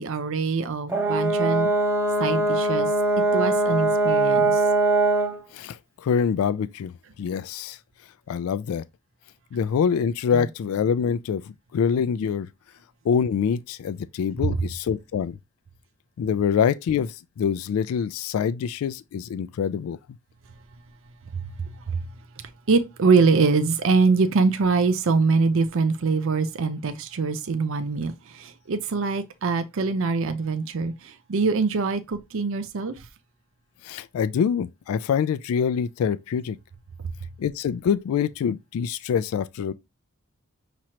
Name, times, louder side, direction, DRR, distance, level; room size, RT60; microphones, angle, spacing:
voice 1, 0.0-1.7 2.2-2.9 3.3-4.6 21.3-21.4 21.9-22.0 22.7-32.9, right 4 dB, 65° right, 0.5 m, -23 dB
Brass instrument, 0.9-5.4, right 2 dB, 10° right, 0.7 m, -21 dB
voice 2, 5.5-7.8 8.3-8.8 9.5-12.5 13.1-15.4 16.2-20.0 33.8-36.6 37.4-39.7, left 7 dB, 85° left, 0.3 m, -25 dB
6.0 x 3.0 x 2.9 m
head